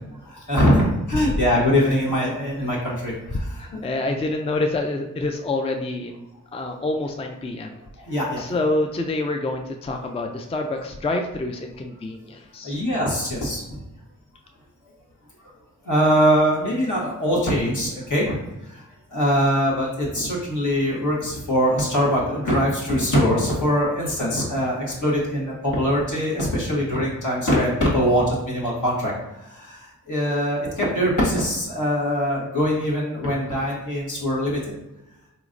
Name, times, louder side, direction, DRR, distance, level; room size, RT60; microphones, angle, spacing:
voice 1, 0.2-3.8 8.0-8.4 12.6-13.8 15.8-18.8 19.1-34.6, equal, 65° left, -5 dB, 1.3 m, -22 dB
voice 2, 3.6-6.2 6.5-7.8 8.4-12.8, left 2 dB, 20° left, 4 dB, 0.3 m, -27 dB
4.1 x 3.0 x 2.5 m, 0.95 s
cardioid pair, 50°, 32 cm